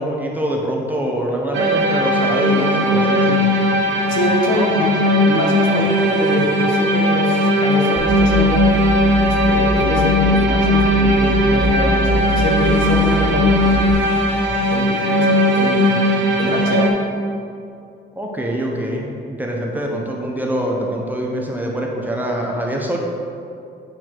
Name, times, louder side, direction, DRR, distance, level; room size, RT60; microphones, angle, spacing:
voice 1, 0.0-3.6 4.5-4.7 18.2-23.0, equal, 10° right, -1 dB, 1.1 m, -24 dB
sound 1, 1.5-16.9, left 1 dB, 70° right, 1.0 m, -17 dB
voice 2, 4.1-8.6 9.2-13.8 14.7-15.9 16.4-16.9, left 2 dB, 75° left, -1 dB, 1.3 m, -24 dB
sound 2, 8.0-13.9, right 2 dB, 25° left, 1.1 m, -23 dB
8.0 x 4.2 x 4.5 m, 2.5 s
cardioid pair, 90°, 20 cm